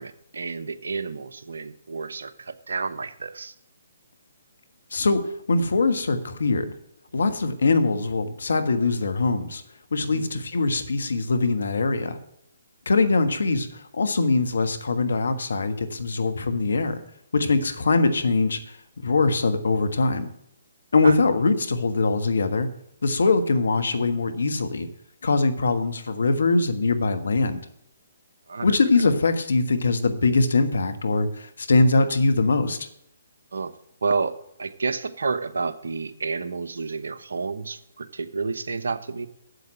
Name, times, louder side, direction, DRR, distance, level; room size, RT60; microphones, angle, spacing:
voice 1, 0.0-3.5 10.1-10.4 21.0-21.2 28.5-28.8 33.5-33.7 34.0-39.3, right 4 dB, 70° right, 11 dB, 0.9 m, -30 dB
voice 2, 5.5-6.7 7.1-9.6 9.9-12.2 12.8-13.7 13.9-17.0 17.3-18.6 19.0-20.3 20.9-22.7 23.0-24.9 25.2-27.6 28.6-32.8, left 3 dB, 70° left, 9 dB, 1.4 m, -22 dB
8.1 x 7.8 x 8.7 m, 0.74 s
figure-of-eight pair, 135°, 0 cm